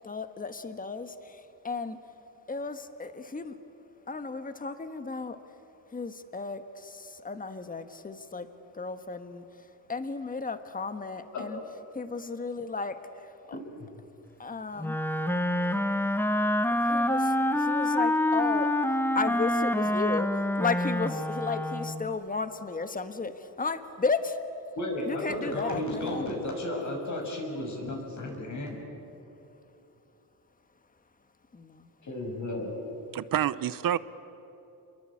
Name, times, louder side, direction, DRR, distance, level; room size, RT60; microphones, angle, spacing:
voice 1, 0.0-2.0 2.5-3.6 4.1-5.4 5.9-8.5 8.7-9.4 9.9-11.6 11.9-13.6 14.4-15.0 16.7-18.7 19.1-20.3 20.6-24.3 25.1-26.3 31.6-31.9, left 4 dB, 20° left, 9 dB, 1.4 m, -34 dB
Wind instrument woodwind instrument, 14.8-22.1, left 1 dB, 5° left, 1.0 m, -27 dB
voice 2, 24.7-28.9 32.0-32.7, left 1 dB, 50° left, 1 dB, 6.6 m, -33 dB
voice 3, 33.1-34.0, right 10 dB, 60° right, 16 dB, 0.8 m, -27 dB
29.0 x 22.0 x 8.6 m, 2.9 s
cardioid pair, 115°, 38 cm